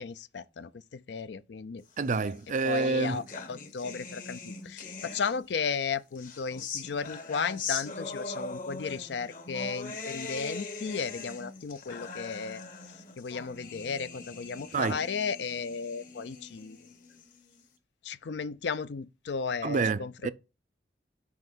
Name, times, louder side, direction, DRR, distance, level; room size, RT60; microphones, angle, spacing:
voice 1, 0.0-1.8 2.6-3.2 3.5-12.6 13.2-16.8 18.0-20.3, left 5 dB, 75° left, 0.5 m, -35 dB
voice 2, 2.0-3.3 14.7-15.0 19.6-20.3, right 4 dB, 45° right, 0.4 m, -28 dB
sound 1, 2.2-5.7 6.1-17.6, left 4 dB, 50° left, 1.2 m, -41 dB
5.6 x 5.5 x 6.1 m
head